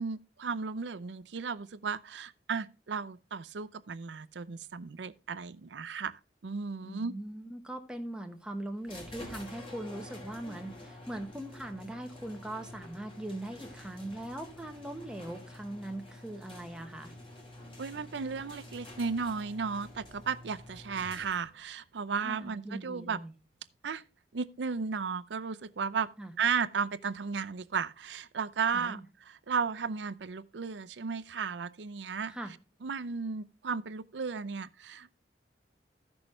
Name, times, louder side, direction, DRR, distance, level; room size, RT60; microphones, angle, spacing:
voice 1, 0.0-7.1 17.8-23.2 23.8-24.0 24.3-26.1 26.4-29.0 29.3-32.3 32.8-35.1, right 5 dB, 90° right, 0.6 m, -34 dB
voice 2, 6.8-17.1 22.2-23.3 26.2-26.3 28.7-29.0 32.3-32.5, right 1 dB, 5° right, 1.3 m, -41 dB
sound 1, 8.9-21.6, left 1 dB, 30° left, 2.9 m, -48 dB
14.5 x 6.2 x 3.2 m
head